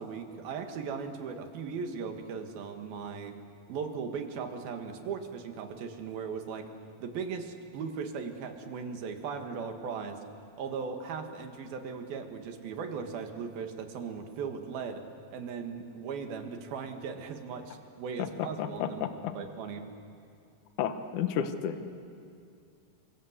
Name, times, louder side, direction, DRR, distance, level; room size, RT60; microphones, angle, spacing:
voice 1, 0.0-3.4 3.7-6.7 7.0-10.2 10.6-15.0 15.3-19.0 19.4-19.9, right 5 dB, 85° right, 5 dB, 3.8 m, -38 dB
voice 2, 18.6-19.3 20.8-21.8, left 8 dB, 65° left, 8 dB, 2.6 m, -32 dB
28.5 x 25.0 x 8.2 m, 2.4 s
omnidirectional pair, 4.1 m